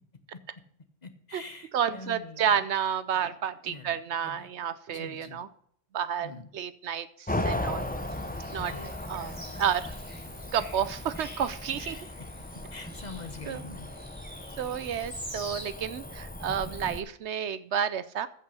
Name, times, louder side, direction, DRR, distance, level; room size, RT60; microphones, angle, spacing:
voice 1, 1.0-2.7 3.7-4.0 4.2-4.5 4.9-5.5 6.2-6.5 8.6-8.9 11.8-12.3 12.7-13.9, left 3 dB, 35° left, 9 dB, 1.1 m, -44 dB
voice 2, 1.7-5.5 5.9-7.9 8.5-8.7 9.1-9.9 10.5-12.0 13.5-13.6 14.6-18.3, right 8 dB, 65° right, 15 dB, 0.8 m, -30 dB
Cricket / Motor vehicle (road), 7.3-17.0, left 1 dB, 10° left, 0.4 m, -37 dB
sound 1, 7.8-15.6, equal, 5° right, 3.8 m, -47 dB
14.5 x 5.5 x 5.4 m, 0.65 s
omnidirectional pair, 1.3 m